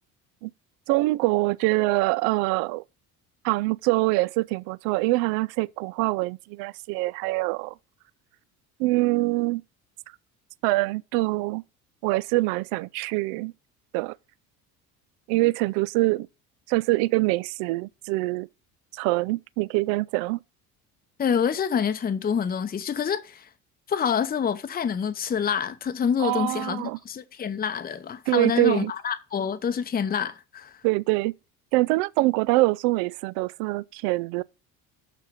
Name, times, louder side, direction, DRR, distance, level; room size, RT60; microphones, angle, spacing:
voice 1, 0.9-2.8 3.4-7.7 8.8-9.6 10.6-11.6 12.0-13.5 13.9-14.2 15.3-16.3 16.7-18.5 18.9-20.4 26.2-27.0 28.3-28.9 30.8-31.3 31.7-34.4, right 21 dB, 50° right, 0.5 m, -24 dB
voice 2, 21.2-23.5 23.9-30.8, left 7 dB, 20° left, 0.8 m, -27 dB
6.8 x 6.0 x 5.5 m
figure-of-eight pair, 60°, 46 cm